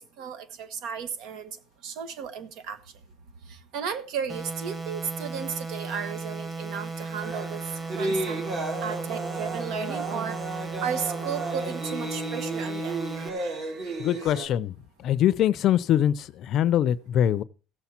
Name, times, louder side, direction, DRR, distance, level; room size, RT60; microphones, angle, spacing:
voice 1, 0.0-1.6 1.8-2.8 3.5-7.6 8.0-8.4 8.8-10.4 10.8-14.3, right 7 dB, 75° right, 1.4 m, -35 dB
sound 1, 4.3-13.3, right 3 dB, 20° right, 1.8 m, -36 dB
sound 2, 7.2-14.5, right 2 dB, 50° right, 3.8 m, -33 dB
voice 2, 14.0-17.4, left 11 dB, 50° left, 0.5 m, -23 dB
16.0 x 7.1 x 4.4 m
cardioid pair, 145°, 0 cm